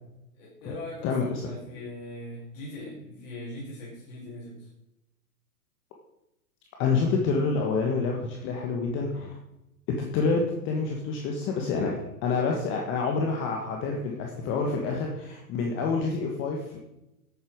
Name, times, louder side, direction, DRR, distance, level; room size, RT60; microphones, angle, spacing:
voice 1, 0.4-4.7 14.3-14.4, left 1 dB, 55° left, -6 dB, 4.9 m, -40 dB
voice 2, 1.0-1.4 6.8-9.4 10.0-16.8, left 4 dB, 25° left, 1 dB, 1.4 m, -27 dB
11.5 x 8.8 x 4.7 m, 0.91 s
hypercardioid pair, 140°, 46 cm